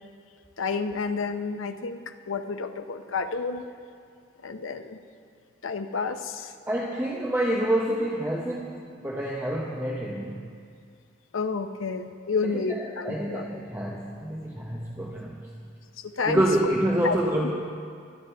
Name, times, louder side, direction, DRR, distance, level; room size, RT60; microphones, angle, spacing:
voice 1, 0.6-3.7 4.4-5.0 5.6-6.5 11.3-13.5 16.0-16.4 17.0-17.1, left 4 dB, 80° left, 8 dB, 0.7 m, -30 dB
voice 2, 6.7-10.4 12.4-15.4 16.3-17.5, right 1 dB, 10° right, -3 dB, 0.9 m, -27 dB
22.0 x 11.5 x 3.4 m, 2.3 s
head